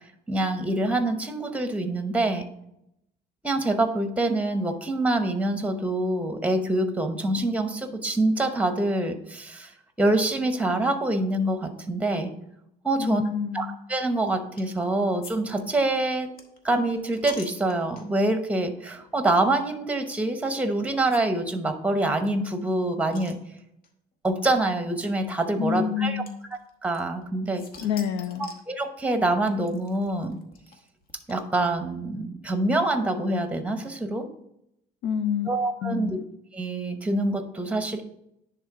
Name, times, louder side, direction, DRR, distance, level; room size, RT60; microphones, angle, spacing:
voice 1, 0.3-2.5 3.4-9.7 10.0-12.3 12.8-13.2 13.5-16.3 16.6-23.4 24.2-26.2 26.8-27.7 28.4-30.4 31.3-34.3 35.5-36.2 36.5-38.0, right 2 dB, 10° right, 7 dB, 0.9 m, -25 dB
voice 2, 13.0-13.8 25.5-26.4 27.8-28.5 35.0-35.5 35.8-36.2, left 8 dB, 90° left, 12 dB, 0.6 m, -28 dB
sound 1, 14.6-14.9 15.2-15.3 15.6-18.3 18.9-19.1 19.3-19.4 20.5-20.6 21.1-21.2 21.5-21.6 21.8-21.9 22.3-23.9 24.8-24.9 26.3-27.3 27.6-28.7 29.5-31.7, left 4 dB, 60° left, 1.1 m, -47 dB
10.0 x 3.5 x 3.7 m, 0.79 s
cardioid pair, 110°, 17 cm